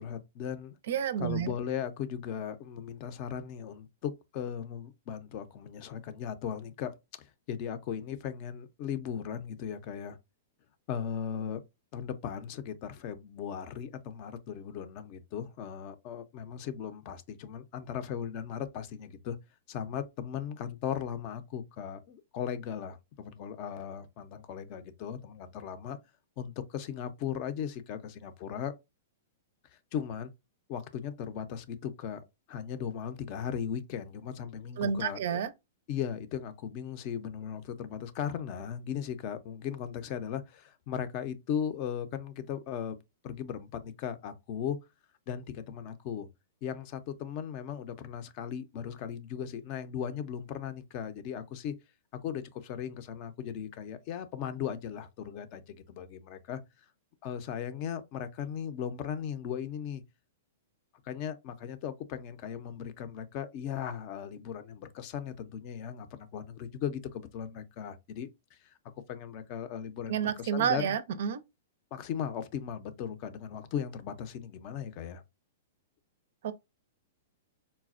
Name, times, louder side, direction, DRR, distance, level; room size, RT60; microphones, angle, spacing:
voice 1, 0.0-0.8 1.2-10.2 10.9-11.6 11.9-19.4 19.7-26.0 26.4-28.7 29.9-30.3 30.7-32.2 32.5-35.4 35.9-43.0 43.2-44.8 45.3-46.3 46.6-51.7 52.1-56.6 57.2-60.0 61.0-68.6 69.1-70.9 71.9-75.2, left 8 dB, 40° left, 0.5 m, -37 dB
voice 2, 0.9-1.5 34.8-35.5 70.1-71.4 76.4-76.5, right 8 dB, 65° right, 0.4 m, -30 dB
4.0 x 2.2 x 2.4 m
hypercardioid pair, 140°, 0 cm